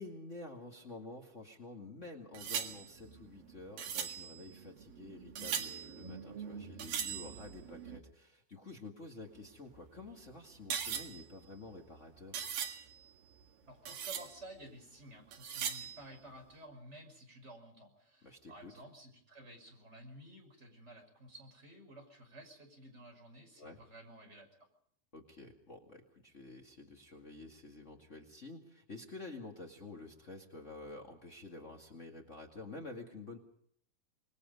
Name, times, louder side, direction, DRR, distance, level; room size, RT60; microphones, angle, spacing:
voice 1, 0.0-12.4 18.2-18.8 23.6-23.8 25.1-33.4, left 3 dB, 60° left, 1 dB, 0.7 m, -49 dB
sound 1, 2.3-8.0 9.2-13.4 13.7-14.5 15.3-16.2, right 8 dB, 55° right, 3.3 m, -41 dB
voice 2, 13.7-24.5, right 1 dB, 15° right, 2 dB, 5.7 m, -53 dB
27.5 x 21.0 x 5.4 m, 0.66 s
omnidirectional pair, 5.3 m